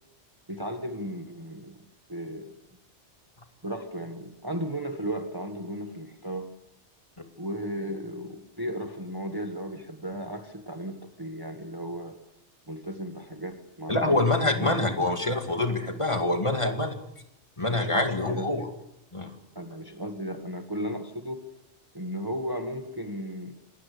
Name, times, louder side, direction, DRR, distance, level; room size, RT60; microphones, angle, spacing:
voice 1, 0.5-1.8 2.1-2.5 3.6-6.5 7.4-12.2 12.7-14.2 14.5-14.8 16.6-16.8 17.7-18.5 19.5-21.5 21.9-23.5, equal, 20° right, 6 dB, 1.4 m, -35 dB
voice 2, 13.9-16.9 17.6-18.7 19.1-19.3, left 2 dB, 25° left, 5 dB, 2.3 m, -25 dB
27.5 x 19.0 x 6.7 m, 0.81 s
omnidirectional pair, 1.2 m